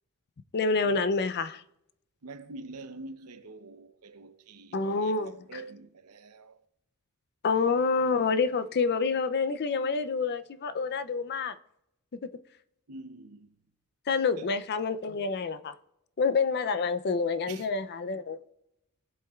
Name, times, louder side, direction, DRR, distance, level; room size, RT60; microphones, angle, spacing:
voice 1, 0.5-1.6 4.7-5.6 7.4-11.5 12.1-12.3 14.1-15.7 16.2-18.4, left 4 dB, 50° left, 0.5 m, -28 dB
voice 2, 2.2-6.6 12.9-13.5 14.3-14.5 17.5-17.7, right 3 dB, 85° right, 0.8 m, -46 dB
17.5 x 7.8 x 2.4 m
head